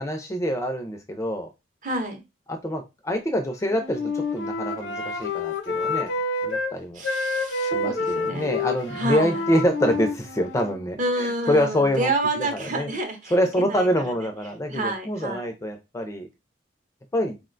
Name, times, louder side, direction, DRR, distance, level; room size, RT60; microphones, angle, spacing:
voice 1, 0.0-1.5 2.5-6.1 6.4-7.0 7.7-12.1 12.4-12.9 13.3-16.3 17.1-17.3, equal, 15° left, 5 dB, 0.3 m, -26 dB
voice 2, 1.8-2.2 7.0-8.5 8.9-9.4 11.0-13.4 13.7-13.9 14.7-15.5, right 2 dB, 45° right, 5 dB, 0.6 m, -28 dB
Wind instrument woodwind instrument, 3.6-6.7 7.0-10.8, left 3 dB, 80° left, 0.7 m, -28 dB
3.7 x 2.1 x 2.4 m, 0.24 s
head